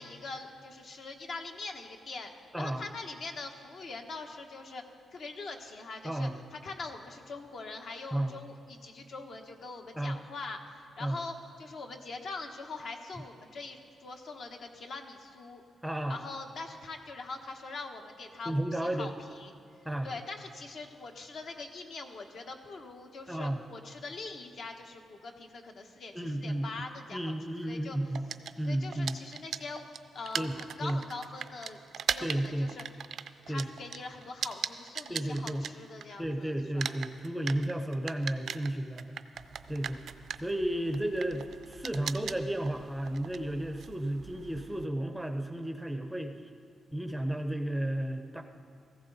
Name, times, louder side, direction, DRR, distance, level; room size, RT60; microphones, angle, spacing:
voice 1, 0.0-4.8 5.1-15.6 16.1-18.6 18.8-19.5 20.0-27.3 27.7-28.0 28.7-29.9 30.1-31.8 32.1-33.0 33.5-36.9 37.5-37.6, left 3 dB, 55° left, 3 dB, 1.2 m, -43 dB
voice 2, 2.5-2.8 6.0-6.4 8.1-8.3 10.0-10.2 11.0-11.2 15.8-16.2 18.5-19.1 19.8-20.2 23.3-23.6 26.1-26.7 27.1-28.3 28.6-29.2 30.4-30.5 30.8-31.0 32.2-32.7 33.5-33.7 35.1-35.6 36.2-39.2 39.7-40.0 40.4-46.4 46.9-48.4, right 1 dB, ahead, 6 dB, 0.6 m, -33 dB
sound 1, 28.1-36.3 36.6-44.9, right 8 dB, 65° right, 0.4 m, -39 dB
18.0 x 15.0 x 4.0 m, 2.5 s
cardioid pair, 135°, 0 cm